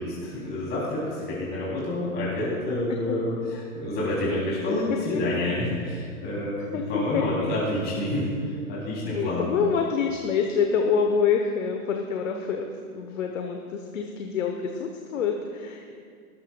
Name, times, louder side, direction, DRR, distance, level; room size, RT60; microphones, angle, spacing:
voice 1, 0.0-8.3 8.7-9.5, left 1 dB, 25° left, -6 dB, 3.5 m, -28 dB
voice 2, 6.7-7.5 9.1-15.9, left 6 dB, 60° left, 3 dB, 1.2 m, -27 dB
18.5 x 13.0 x 2.4 m, 2.1 s
figure-of-eight pair, 110°, 44 cm